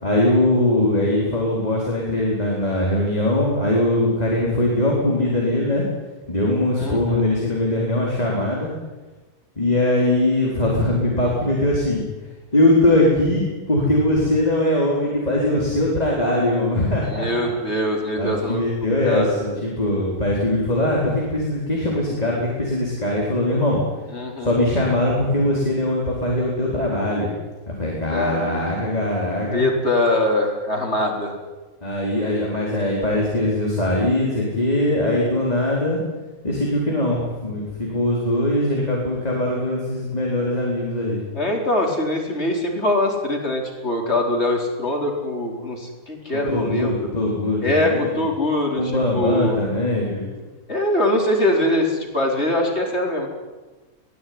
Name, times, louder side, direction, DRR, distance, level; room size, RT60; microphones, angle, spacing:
voice 1, 0.0-5.9 6.3-8.7 9.6-12.0 12.5-17.3 18.2-19.3 19.6-23.8 24.4-27.3 27.8-29.6 31.8-36.0 36.4-41.2 46.3-48.3 48.8-50.5, left 1 dB, 25° left, -3 dB, 4.3 m, -21 dB
voice 2, 6.8-7.2 17.0-18.6 19.0-19.6 24.1-24.5 28.1-28.6 29.5-31.3 41.3-47.1 47.6-49.6 50.7-53.3, left 1 dB, 45° left, 1 dB, 4.8 m, -23 dB
22.5 x 17.5 x 9.6 m, 1.2 s
omnidirectional pair, 1.5 m